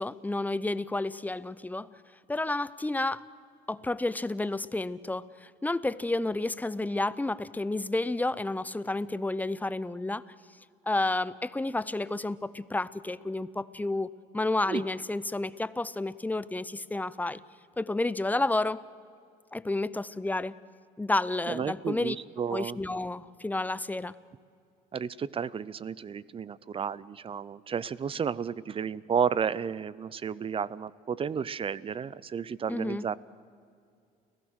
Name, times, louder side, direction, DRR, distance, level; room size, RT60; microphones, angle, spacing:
voice 1, 0.0-1.9 2.3-3.2 3.7-10.2 10.9-17.4 17.8-18.8 19.5-20.5 21.0-22.2 22.5-24.1 32.7-33.0, left 2 dB, 10° left, 17 dB, 0.6 m, -31 dB
voice 2, 21.5-22.8 24.9-33.2, right 7 dB, 35° right, 21 dB, 0.6 m, -32 dB
30.0 x 16.5 x 6.4 m, 2.4 s
cardioid pair, 110°, 17 cm